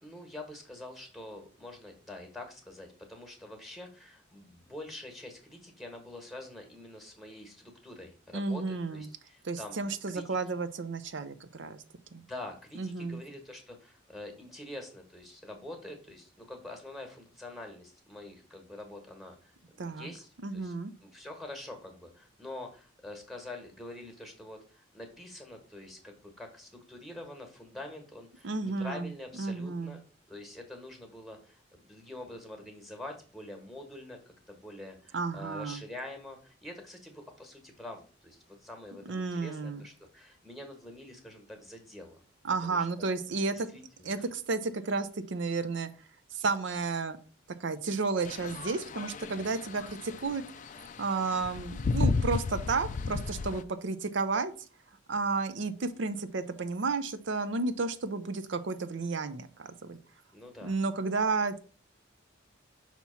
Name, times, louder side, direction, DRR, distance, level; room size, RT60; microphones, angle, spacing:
voice 1, 0.0-10.4 12.2-20.7 21.0-30.0 30.3-42.2 42.6-42.9 43.5-44.2 60.3-60.8, left 1 dB, ahead, 4 dB, 1.2 m, -46 dB
voice 2, 8.3-9.1 9.4-11.8 12.1-12.2 12.8-13.2 19.8-20.1 20.4-20.9 28.4-29.1 29.4-30.0 35.1-35.8 39.1-39.8 42.4-43.7 44.0-45.9 46.3-47.2 47.6-50.5 51.0-54.5 55.1-60.0 60.6-61.6, right 4 dB, 65° right, 11 dB, 0.6 m, -32 dB
sound 1, 48.3-53.6, left 4 dB, 40° left, 0.3 m, -33 dB
5.9 x 2.9 x 5.6 m, 0.38 s
head